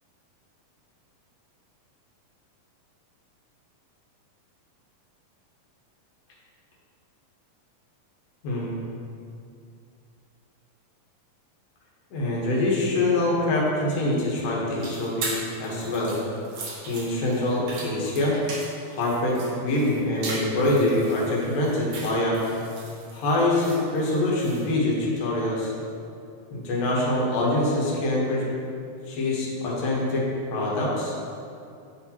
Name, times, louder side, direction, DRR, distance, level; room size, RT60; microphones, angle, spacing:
voice 1, 8.4-8.7 12.1-15.4 15.6-16.1 16.9-18.4 18.9-22.5 23.1-25.7 26.5-28.4 29.1-30.2 30.5-31.1, left 1 dB, 80° left, -5 dB, 2.8 m, -24 dB
sound 1, 14.8-24.7, right 3 dB, 65° right, 1.8 m, -38 dB
9.9 x 4.2 x 2.8 m, 2.5 s
omnidirectional pair, 4.0 m